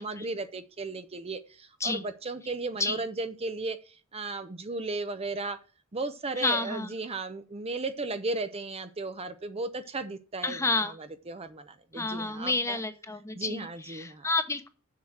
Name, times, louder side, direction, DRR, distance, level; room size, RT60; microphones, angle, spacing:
voice 1, 0.0-5.6 5.9-12.8 13.4-14.3, right 3 dB, 30° right, 10 dB, 0.6 m, -35 dB
voice 2, 6.4-6.9 10.4-10.9 11.9-14.7, left 3 dB, 15° left, 9 dB, 1.0 m, -30 dB
7.5 x 6.2 x 7.3 m, 0.37 s
head